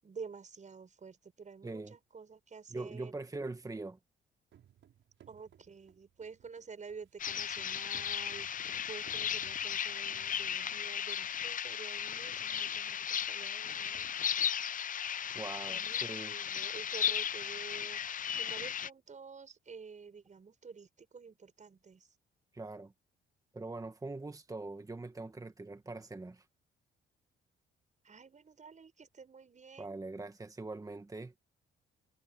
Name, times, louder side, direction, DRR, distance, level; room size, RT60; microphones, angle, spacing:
voice 1, 0.0-3.1 5.3-8.5 8.9-14.1 15.7-18.0 18.3-22.1 28.0-30.0, right 5 dB, 40° right, 6.7 m, -50 dB
voice 2, 1.6-2.0 2.7-4.0 15.3-16.3 22.5-22.9 23.5-26.4 29.8-31.4, right 3 dB, 15° right, 1.6 m, -42 dB
sound 1, 4.5-11.0 11.7-11.8 12.1-12.3 12.7-12.8 13.4-13.5 13.7-14.1, right 10 dB, 70° right, 7.2 m, -62 dB
Woods at Condon Peak, 7.2-18.9, left 8 dB, 40° left, 0.6 m, -36 dB
cardioid pair, 90°, 20 cm